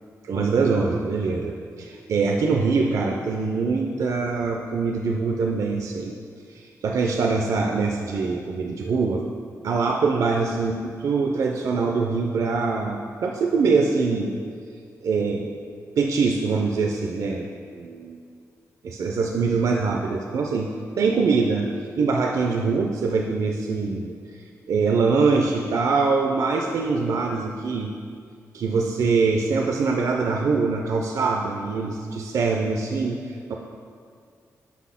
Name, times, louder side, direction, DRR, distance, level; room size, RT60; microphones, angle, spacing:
voice 1, 0.2-6.1 6.5-9.2 9.6-14.4 15.0-15.5 16.0-18.2 18.8-21.7 22.0-24.4 24.7-27.9 28.5-33.5, right 4 dB, 65° right, 1 dB, 0.4 m, -23 dB
5.7 x 4.2 x 5.6 m, 2.2 s
wide cardioid pair, 130°, 6 cm